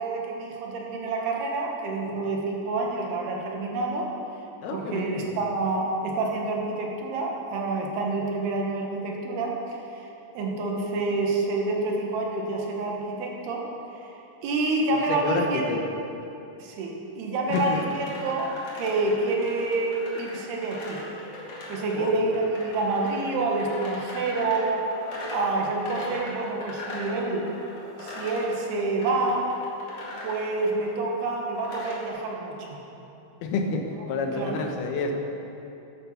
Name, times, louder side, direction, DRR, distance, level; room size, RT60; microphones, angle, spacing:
voice 1, 0.0-4.1 4.7-10.1 10.3-13.7 14.0-14.2 14.4-15.6 16.6-21.0 21.7-24.8 25.3-27.4 28.0-29.5 30.2-32.8 34.4-34.5, right 3 dB, 70° right, -1 dB, 3.3 m, -28 dB
voice 2, 4.6-5.3 14.9-15.8 17.5-17.8 21.9-22.3 33.4-35.1, left 3 dB, 75° left, 2 dB, 2.8 m, -29 dB
sound 1, 17.5-32.1, left 1 dB, 45° left, 2.5 m, -40 dB
13.5 x 9.3 x 5.7 m, 2.9 s
omnidirectional pair, 4.9 m